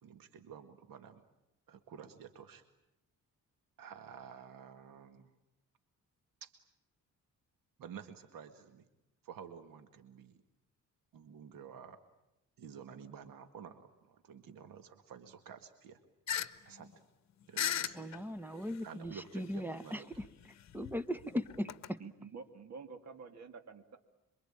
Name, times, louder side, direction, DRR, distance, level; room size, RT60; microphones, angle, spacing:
voice 1, 0.0-1.2 1.7-2.6 3.8-5.3 6.4-6.5 7.8-8.9 9.2-10.3 11.1-12.0 12.6-16.0 16.6-16.9 17.5-18.0 18.8-20.2, right 7 dB, 85° right, 8 dB, 1.9 m, -51 dB
sound 1, 16.3-16.5 16.8-16.9 17.6-18.2 19.1-19.2 20.1-21.9, left 10 dB, 55° left, 1.2 m, -36 dB
voice 2, 17.9-20.3 20.7-22.0, equal, 5° right, 13 dB, 1.1 m, -38 dB
voice 3, 22.0-24.0, right 5 dB, 55° right, 7 dB, 2.5 m, -49 dB
27.0 x 23.5 x 8.9 m, 0.91 s
cardioid pair, 130°, 33 cm